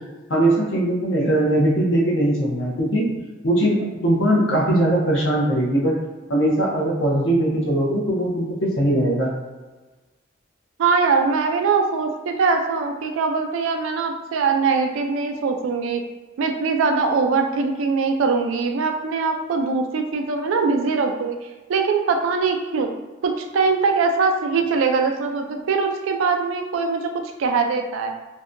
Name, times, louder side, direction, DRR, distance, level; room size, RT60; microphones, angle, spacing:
voice 1, 0.3-3.1 3.4-3.8 4.0-5.9 6.3-9.3, right 1 dB, 70° left, -3 dB, 0.7 m, -20 dB
voice 2, 10.8-16.0 16.4-21.4 21.7-22.9 23.2-27.1 27.4-28.1, right 4 dB, 80° right, 4 dB, 0.3 m, -22 dB
2.6 x 2.2 x 2.5 m, 1.2 s
head